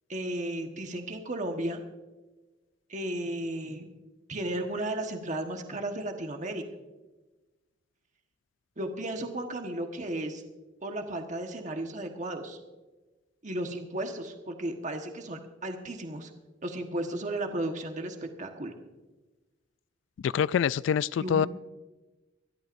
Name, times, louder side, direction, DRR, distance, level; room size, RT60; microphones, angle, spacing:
voice 1, 0.1-1.8 2.9-3.9 4.3-6.6 8.8-10.4 10.8-12.6 13.4-16.3 16.6-18.7 21.2-21.5, right 1 dB, 40° right, 4 dB, 1.3 m, -34 dB
voice 2, 20.2-21.5, left 8 dB, 80° left, 19 dB, 0.3 m, -25 dB
25.0 x 12.5 x 2.6 m, 1.2 s
head